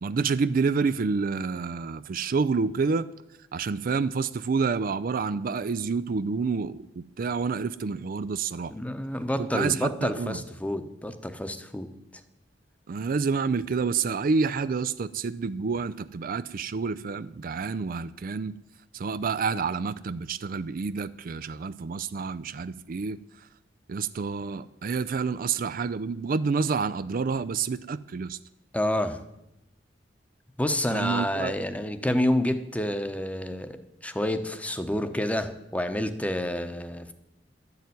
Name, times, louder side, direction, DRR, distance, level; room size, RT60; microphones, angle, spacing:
voice 1, 0.0-3.1 3.5-8.7 9.4-10.4 12.9-18.6 18.9-23.5 23.9-28.4 30.9-31.5, right 5 dB, 50° right, 14 dB, 0.4 m, -28 dB
voice 2, 8.7-11.9 28.7-29.2 30.6-37.1, left 1 dB, 10° left, 9 dB, 0.9 m, -29 dB
12.0 x 6.9 x 9.4 m, 0.86 s
head